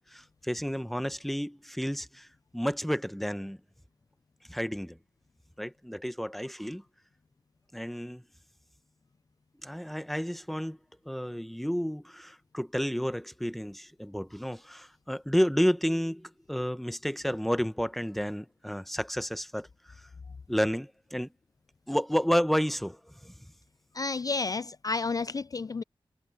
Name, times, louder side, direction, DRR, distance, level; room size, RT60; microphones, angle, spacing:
voice 1, 0.1-2.3 2.5-3.6 4.5-5.0 5.6-6.8 7.7-8.2 9.6-10.8 11.0-19.7 20.5-21.3 21.9-23.3, equal, ahead, 1.1 m, -31 dB
voice 2, 23.9-25.8, left 4 dB, 40° left, 0.3 m, -31 dB
cardioid pair, 40°, 10 cm